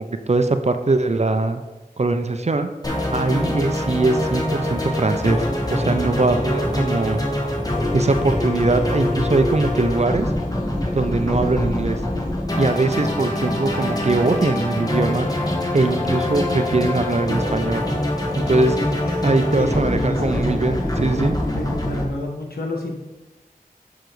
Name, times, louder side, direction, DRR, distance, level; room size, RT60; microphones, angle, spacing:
voice 1, 0.0-1.6 2.0-2.7 3.1-5.4 5.7-7.2 7.9-10.3 10.9-12.0 12.6-15.3 15.7-17.8 18.5-18.8 19.2-21.4, right 3 dB, 45° right, 8 dB, 0.5 m, -21 dB
sound 1, 2.8-22.0, left 1 dB, 25° left, 1.2 m, -24 dB
voice 2, 18.8-21.1 21.4-23.0, left 1 dB, 85° left, 0 dB, 1.3 m, -29 dB
6.9 x 6.1 x 3.1 m, 1.1 s
wide cardioid pair, 55°, 16 cm